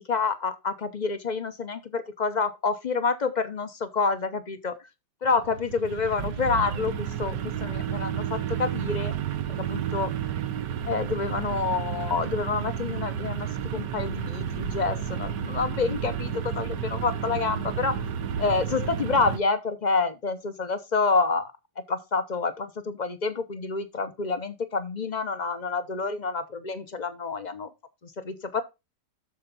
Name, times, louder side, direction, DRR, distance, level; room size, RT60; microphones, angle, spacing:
voice 1, 0.0-4.8 5.2-9.1 9.5-10.1 10.8-18.0 18.4-21.5 21.9-27.7 28.0-28.6, left 4 dB, 35° left, 0.7 m, -28 dB
sound 1, 5.2-19.4, right 8 dB, 85° right, 1.5 m, -31 dB
13.0 x 4.6 x 3.9 m
omnidirectional pair, 1.8 m